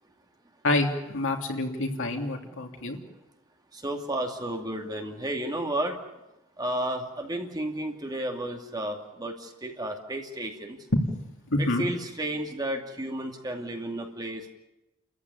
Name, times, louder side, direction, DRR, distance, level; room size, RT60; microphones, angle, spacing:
voice 1, 0.6-3.0 11.1-11.2 11.5-11.8, left 2 dB, 60° left, 2 dB, 3.2 m, -27 dB
voice 2, 3.7-6.0 6.6-10.8 11.6-14.5, right 1 dB, 20° right, 3 dB, 2.6 m, -32 dB
30.0 x 15.0 x 9.7 m, 0.96 s
head